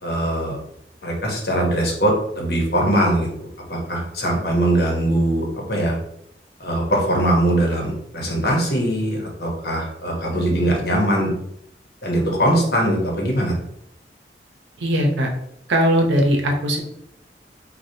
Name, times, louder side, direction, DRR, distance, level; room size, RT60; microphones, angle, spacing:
voice 1, 0.0-0.6 1.0-6.0 6.6-11.3 12.0-13.5, right 1 dB, 55° left, -1 dB, 1.0 m, -21 dB
voice 2, 14.8-15.3 15.7-16.8, equal, 85° right, 2 dB, 0.8 m, -19 dB
4.8 x 2.3 x 2.8 m, 0.75 s
head